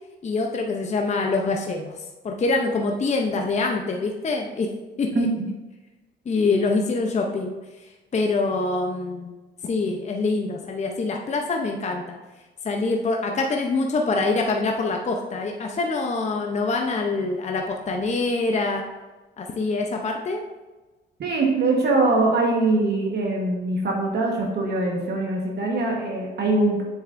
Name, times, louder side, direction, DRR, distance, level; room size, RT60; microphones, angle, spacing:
voice 1, 0.2-4.7 5.0-5.3 6.3-7.5 8.1-9.3 9.6-12.2 12.6-18.8 19.4-20.4, left 3 dB, 35° left, 2 dB, 0.7 m, -25 dB
voice 2, 21.2-26.8, right 2 dB, 55° right, -1 dB, 1.3 m, -22 dB
7.2 x 6.6 x 2.6 m, 1.2 s
cardioid pair, 90°, 20 cm